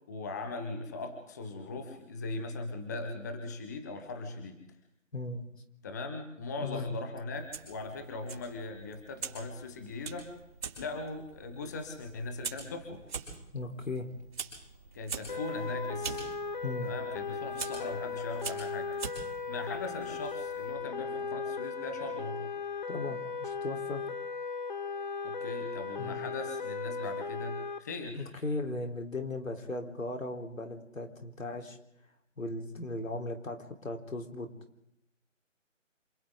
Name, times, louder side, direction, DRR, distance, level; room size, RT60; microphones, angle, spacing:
voice 1, 0.1-4.6 5.8-10.3 10.8-13.1 14.9-16.3 16.8-18.9 19.5-22.5 25.2-28.3, left 3 dB, 15° left, 6 dB, 1.2 m, -39 dB
voice 2, 5.1-5.4 6.6-6.8 13.5-14.1 16.6-16.9 22.9-24.0 26.0-26.2 28.2-31.8 32.4-34.5, left 2 dB, 80° left, 4 dB, 4.1 m, -37 dB
Fire, 7.3-20.7, right 5 dB, 35° right, 6.5 m, -44 dB
sound 1, 15.3-27.8, left 4 dB, 40° left, 1.5 m, -37 dB
27.5 x 26.5 x 3.9 m, 0.78 s
figure-of-eight pair, 165°, 39 cm